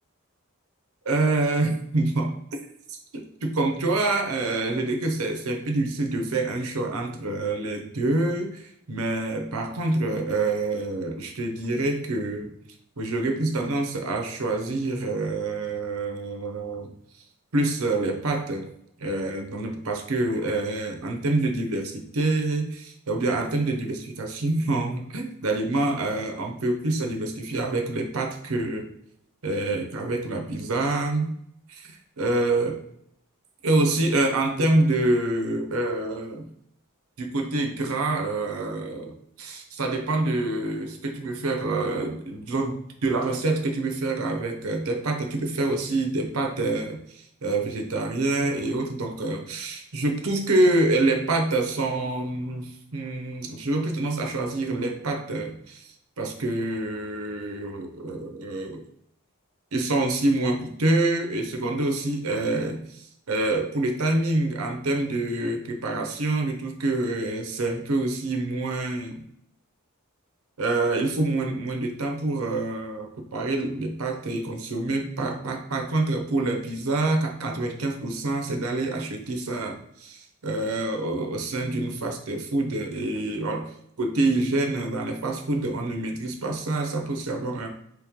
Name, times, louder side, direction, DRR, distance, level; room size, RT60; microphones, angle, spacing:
voice 1, 1.0-2.3 2.9-12.5 13.0-16.9 17.5-18.7 19.0-28.9 29.4-31.3 31.7-32.8 33.6-36.5 37.2-55.9 56.2-58.8 59.7-69.2 70.6-83.7 84.0-87.7, right 2 dB, 80° right, 4 dB, 0.7 m, -26 dB
3.2 x 3.1 x 3.6 m, 0.74 s
head